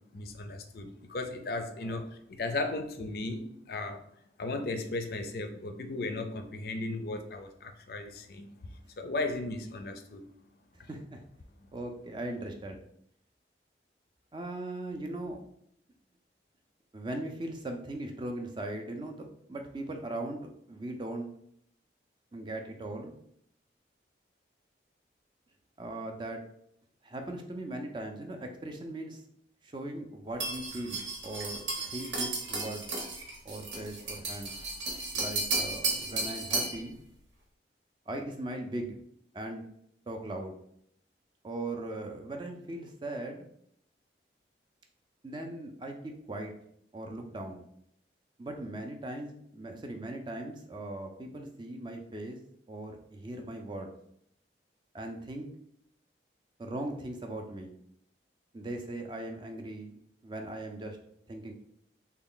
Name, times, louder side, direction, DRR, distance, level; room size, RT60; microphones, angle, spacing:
voice 1, 0.0-4.0 4.4-8.6 9.0-10.2 10.8-10.9, left 2 dB, 55° left, 0.4 m, -36 dB
voice 2, 10.9-11.2 11.7-12.8 14.3-15.4 16.9-21.3 22.3-23.2 25.8-26.4 27.0-29.2 29.6-32.9 33.4-34.5 35.1-36.9 38.1-38.9 39.3-39.7 40.1-40.6 41.4-43.5 45.2-46.5 46.9-47.6 48.4-52.4 52.7-53.9 54.9-55.5 56.6-57.7 58.5-60.0 60.2-61.0 61.3-61.5, right 1 dB, 25° right, 0.4 m, -39 dB
sound 1, 30.4-36.8, right 2 dB, 85° right, 1.0 m, -34 dB
3.5 x 2.3 x 3.7 m
head